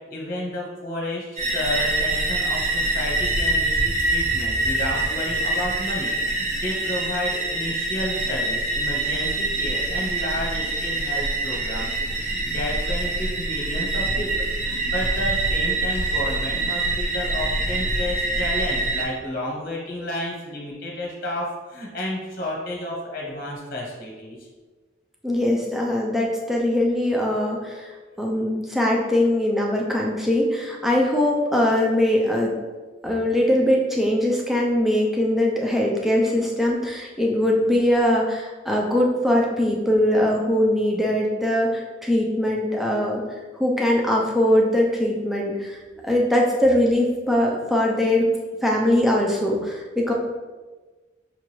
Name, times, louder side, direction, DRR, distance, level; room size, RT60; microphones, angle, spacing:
voice 1, 0.1-11.9 12.2-24.5, left 1 dB, 45° left, -3 dB, 1.1 m, -31 dB
sound 1, 1.4-19.0, right 2 dB, 35° right, 0.8 m, -25 dB
voice 2, 25.2-27.8 28.2-32.6 33.0-43.2 43.6-45.8 46.0-48.2 48.6-50.1, left 1 dB, ahead, -2 dB, 0.5 m, -21 dB
5.7 x 2.5 x 3.0 m, 1.3 s
head